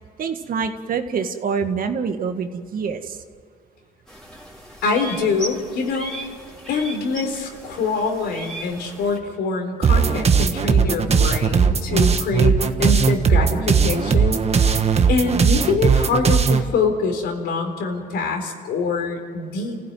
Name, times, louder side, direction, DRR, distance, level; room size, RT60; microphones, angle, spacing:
voice 1, 0.2-3.2, right 6 dB, 60° right, 7 dB, 1.9 m, -26 dB
sound 1, 4.1-9.2, right 1 dB, 5° left, 4.3 m, -37 dB
voice 2, 4.8-6.1 6.7-14.7 15.1-19.8, left 4 dB, 85° left, 3 dB, 4.2 m, -24 dB
sound 2, 9.8-16.6, right 5 dB, 40° right, 1.4 m, -18 dB
29.0 x 15.5 x 9.4 m, 2.1 s
cardioid pair, 110°, 16 cm